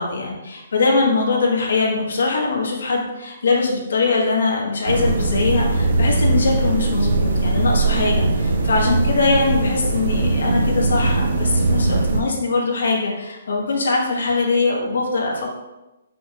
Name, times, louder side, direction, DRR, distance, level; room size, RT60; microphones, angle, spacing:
voice 1, 0.0-15.5, left 3 dB, 75° left, -1 dB, 1.7 m, -22 dB
sound 1, 4.9-12.2, right 2 dB, 65° right, 1.0 m, -20 dB
7.4 x 5.6 x 2.6 m, 1.0 s
hypercardioid pair, 180°, 0 cm